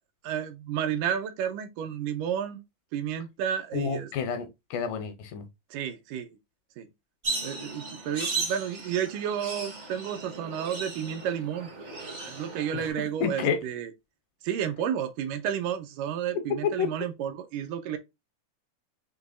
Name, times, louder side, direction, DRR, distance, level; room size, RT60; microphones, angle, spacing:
voice 1, 0.2-2.6 2.9-4.1 5.7-6.3 6.8-6.9 7.4-11.7 12.2-13.9 14.4-18.0, right 9 dB, 80° right, 2.1 m, -31 dB
voice 2, 3.7-5.5 12.7-12.8 13.2-13.6 16.8-16.9, left 6 dB, 80° left, 2.2 m, -29 dB
sound 1, 7.2-12.9, right 3 dB, 60° right, 0.7 m, -36 dB
6.3 x 2.9 x 2.4 m
omnidirectional pair, 3.9 m